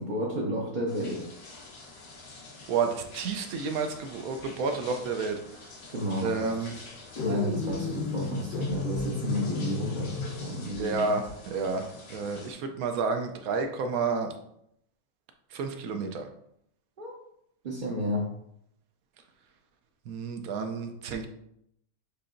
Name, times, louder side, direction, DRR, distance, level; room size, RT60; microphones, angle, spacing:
voice 1, 0.0-1.3 5.9-6.3 7.1-10.1 10.4-11.1 17.0-17.1 17.6-18.3, equal, 50° right, -4 dB, 0.6 m, -31 dB
sound 1, 0.9-12.5, left 3 dB, 90° left, 1.5 m, -47 dB
voice 2, 2.7-5.4 6.2-6.8 10.8-14.3 15.5-16.3 20.1-21.3, right 4 dB, 75° right, 5 dB, 1.0 m, -30 dB
sound 2, 7.2-10.7, left 4 dB, 65° left, 1.0 m, -33 dB
6.7 x 2.8 x 2.5 m, 0.75 s
omnidirectional pair, 1.6 m